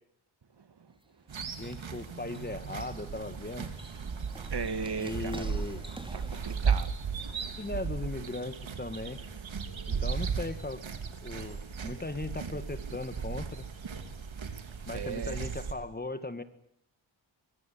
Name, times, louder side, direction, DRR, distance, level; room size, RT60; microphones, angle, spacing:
voice 1, 0.6-1.3 4.5-5.5 6.1-7.0 11.3-11.6 14.9-15.4, right 5 dB, 55° right, 11 dB, 2.2 m, -38 dB
sound 1, 0.9-6.5, right 1 dB, 10° right, 2.6 m, -49 dB
sound 2, 1.3-15.7, right 6 dB, 75° right, 3.1 m, -36 dB
voice 2, 1.6-3.7 5.0-5.8 7.6-9.2 9.9-10.8 11.2-13.7 14.9-16.4, left 2 dB, 20° left, 10 dB, 2.2 m, -38 dB
23.5 x 23.0 x 9.4 m, 0.69 s
wide cardioid pair, 115°, 47 cm